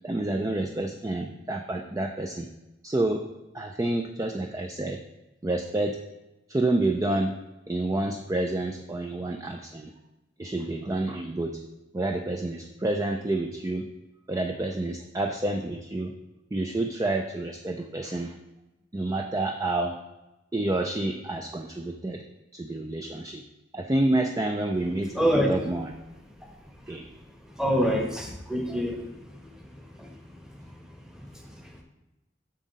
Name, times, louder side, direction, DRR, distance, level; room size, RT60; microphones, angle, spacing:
voice 1, 0.0-2.5 2.8-3.3 3.5-5.0 5.4-6.0 6.5-7.3 7.7-9.9 10.4-11.6 11.9-13.9 14.3-16.1 16.5-18.4 18.9-20.0 20.5-22.2 22.5-23.4 23.7-25.9 26.9-27.1, right 2 dB, 20° right, 4 dB, 0.4 m, -28 dB
voice 2, 25.2-25.5 27.6-29.0 30.0-30.1, equal, 5° right, 2 dB, 1.1 m, -24 dB
7.6 x 6.3 x 4.0 m, 0.98 s
head